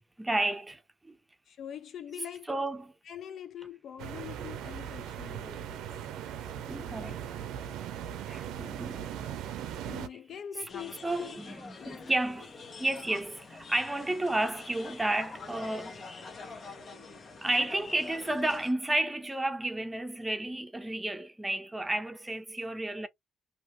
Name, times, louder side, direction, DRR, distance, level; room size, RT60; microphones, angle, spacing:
voice 1, 0.2-1.2 2.5-2.9 6.6-7.2 8.3-9.1 10.1-10.2 10.6-10.7 11.0-16.0 17.4-23.1, right 1 dB, 15° right, 0.7 m, -32 dB
voice 2, 1.5-2.5 3.0-5.8 9.8-12.1, left 9 dB, 65° left, 0.3 m, -44 dB
sound 1, 4.0-10.1, right 9 dB, 90° right, 0.5 m, -39 dB
sound 2, 10.7-18.7, left 4 dB, 45° left, 1.0 m, -46 dB
2.7 x 2.6 x 3.1 m
cardioid pair, 90°, 0 cm